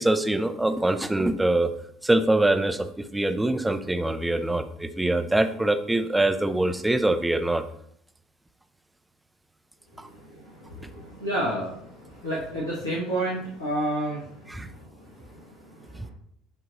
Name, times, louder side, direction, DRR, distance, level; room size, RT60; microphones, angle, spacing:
voice 1, 0.0-1.7 2.0-7.6 10.0-10.1 10.8-10.9 14.5-14.7 16.0-16.1, right 2 dB, 10° right, 9 dB, 0.6 m, -24 dB
voice 2, 9.9-16.1, right 1 dB, 80° left, -7 dB, 1.4 m, -32 dB
9.9 x 3.7 x 3.0 m, 0.69 s
figure-of-eight pair, 60°, 0 cm